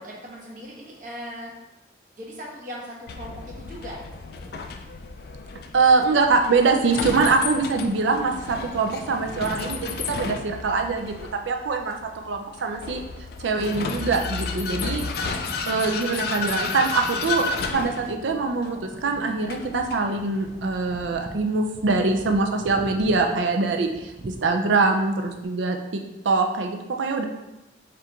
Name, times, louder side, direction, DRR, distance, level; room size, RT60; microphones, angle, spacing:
voice 1, 0.0-1.5 2.2-4.5, equal, 45° right, -3 dB, 1.0 m, -39 dB
Vehicle, 3.1-21.1, left 4 dB, 55° left, 0.3 m, -33 dB
voice 2, 5.7-11.1 11.5-12.0 12.2-13.0 13.4-15.0 15.7-17.4 17.7-27.2, right 4 dB, 90° right, 3 dB, 0.5 m, -23 dB
sound 1, 14.5-25.5, right 1 dB, 25° right, 0.3 m, -44 dB
4.4 x 2.5 x 3.5 m, 0.96 s
head